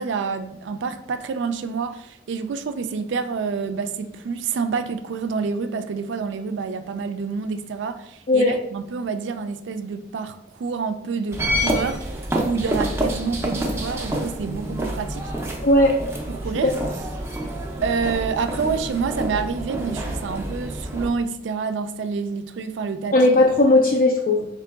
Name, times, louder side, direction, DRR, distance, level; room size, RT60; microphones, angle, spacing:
voice 1, 0.0-12.1 12.4-15.2 16.3-16.7 17.8-23.2, right 5 dB, 85° right, 0.4 m, -28 dB
sound 1, 11.3-21.1, right 1 dB, 15° right, 0.5 m, -28 dB
voice 2, 15.6-16.0 16.6-16.7 23.1-24.5, left 2 dB, 50° left, 0.4 m, -17 dB
3.8 x 3.0 x 3.4 m
head